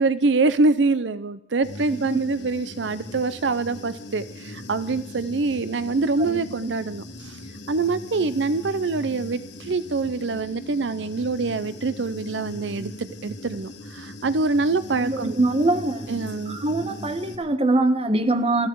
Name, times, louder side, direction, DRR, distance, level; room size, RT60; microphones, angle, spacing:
voice 1, 0.0-7.4 7.7-15.4 16.1-16.6, right 3 dB, 75° right, 14 dB, 0.6 m, -25 dB
Human voice / Buzz, 1.6-17.4, left 1 dB, 75° left, 2.9 m, -39 dB
voice 2, 15.0-16.2 16.5-18.7, right 2 dB, 30° right, 9 dB, 1.3 m, -23 dB
21.0 x 14.5 x 4.7 m, 0.83 s
head